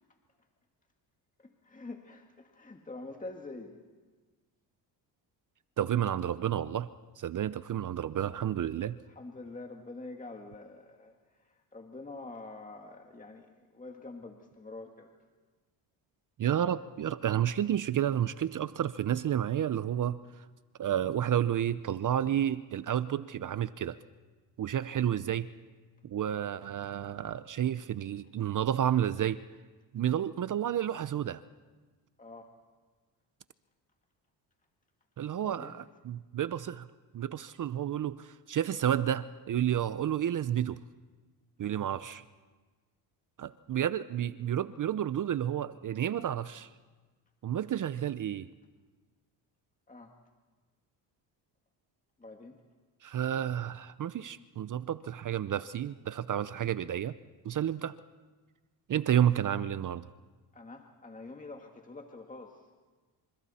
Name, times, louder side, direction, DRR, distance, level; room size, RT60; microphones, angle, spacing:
voice 1, 1.4-3.8 9.1-15.1 32.2-32.5 35.4-35.9 49.9-50.1 52.2-52.6 60.5-62.7, left 2 dB, 15° left, 3 dB, 1.9 m, -46 dB
voice 2, 5.8-6.9 7.2-9.0 16.4-20.4 20.8-24.0 24.6-25.5 26.0-29.4 29.9-31.4 35.2-35.7 36.1-36.9 37.1-40.8 41.6-42.2 43.4-46.7 47.4-48.5 53.0-57.1 57.4-57.9 58.9-60.1, right 10 dB, 45° right, 15 dB, 0.7 m, -31 dB
29.0 x 26.5 x 4.3 m, 1.3 s
cardioid pair, 85°, 44 cm